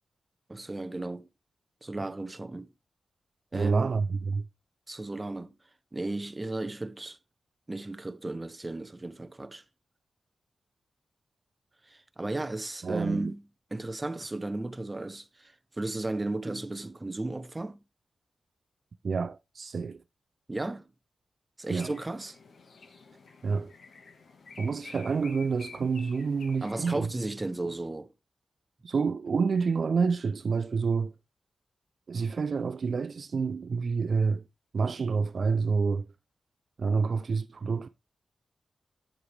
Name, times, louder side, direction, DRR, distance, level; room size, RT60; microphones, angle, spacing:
voice 1, 0.5-1.3 1.8-2.7 3.5-3.9 4.9-5.5 5.9-7.2 7.7-9.6 11.9-13.4 13.7-17.8 20.5-20.9 21.6-22.4 26.6-28.1, right 2 dB, 20° right, 0.8 m, -34 dB
voice 2, 3.5-4.5 12.8-13.3 19.0-20.0 21.7-21.9 23.4-23.7 24.6-27.1 28.8-31.1 32.1-34.4 34.7-36.1 36.8-37.9, right 5 dB, 55° right, 0.4 m, -28 dB
sound 1, 21.8-27.0, left 4 dB, 65° left, 1.5 m, -50 dB
8.7 x 7.8 x 3.4 m
wide cardioid pair, 95°, 0 cm